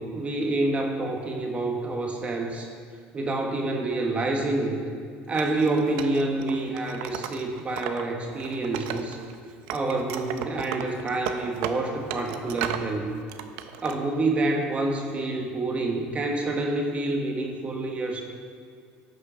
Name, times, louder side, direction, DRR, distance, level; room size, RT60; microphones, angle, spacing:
voice 1, 0.0-2.7 3.1-4.9 5.3-9.2 9.7-13.1 13.8-18.2, right 2 dB, 30° right, 1 dB, 1.3 m, -27 dB
Wood, 5.3-8.0 8.3-9.4 9.7-12.9 13.3-14.0, right 10 dB, 80° right, 0.6 m, -35 dB
11.5 x 6.5 x 5.0 m, 2.2 s
supercardioid pair, 105°, 4 cm